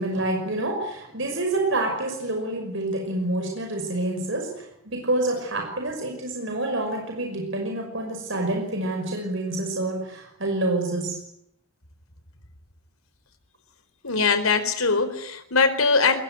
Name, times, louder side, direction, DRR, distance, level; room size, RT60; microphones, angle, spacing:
voice 1, 0.0-11.2, right 2 dB, 60° right, 3 dB, 5.8 m, -27 dB
voice 2, 14.0-16.2, left 4 dB, 90° left, 10 dB, 4.2 m, -21 dB
22.5 x 21.0 x 9.5 m, 0.79 s
head